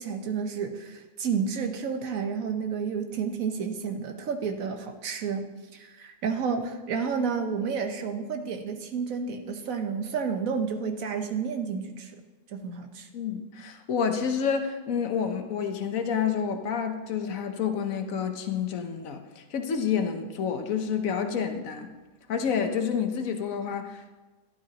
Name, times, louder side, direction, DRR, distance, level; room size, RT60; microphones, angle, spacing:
voice 1, 0.0-12.1 12.5-13.1, right 6 dB, 90° right, 6 dB, 1.4 m, -31 dB
voice 2, 13.1-21.9 22.3-24.1, left 7 dB, 85° left, 6 dB, 1.3 m, -29 dB
12.0 x 12.0 x 2.9 m, 1.2 s
omnidirectional pair, 1.4 m